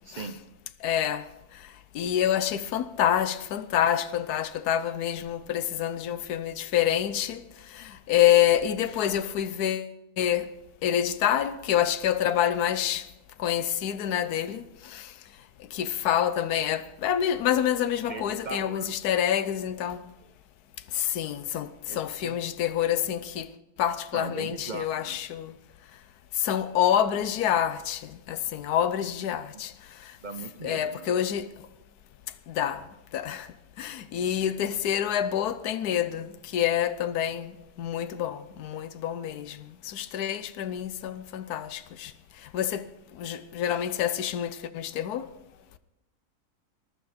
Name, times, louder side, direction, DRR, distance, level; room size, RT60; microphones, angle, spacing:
voice 1, 0.0-0.4 18.1-18.9 21.9-22.4 24.1-25.2 30.2-31.1, right 4 dB, 45° right, 0.6 m, -39 dB
voice 2, 0.8-1.3 1.9-7.4 7.7-9.9 10.2-10.5 10.8-13.1 13.4-15.1 15.7-20.1 20.9-23.5 23.8-25.5 26.4-29.7 30.6-31.5 32.5-32.8 33.1-33.5 33.8-42.1 42.5-42.9 43.2-45.3, left 10 dB, 80° left, 1.3 m, -27 dB
20.5 x 12.0 x 4.3 m
omnidirectional pair, 1.7 m